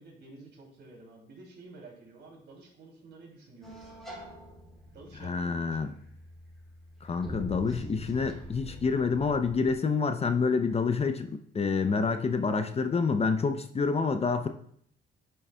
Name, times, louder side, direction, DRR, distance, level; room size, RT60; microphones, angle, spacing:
voice 1, 0.0-4.0 4.8-5.8, right 3 dB, 60° right, -1 dB, 2.9 m, -51 dB
sound 1, 3.6-9.8, equal, ahead, 2.6 m, -45 dB
voice 2, 5.2-5.9 7.0-14.5, left 5 dB, 30° left, 8 dB, 0.6 m, -28 dB
10.5 x 6.3 x 2.3 m, 0.65 s
cardioid pair, 90°, 20 cm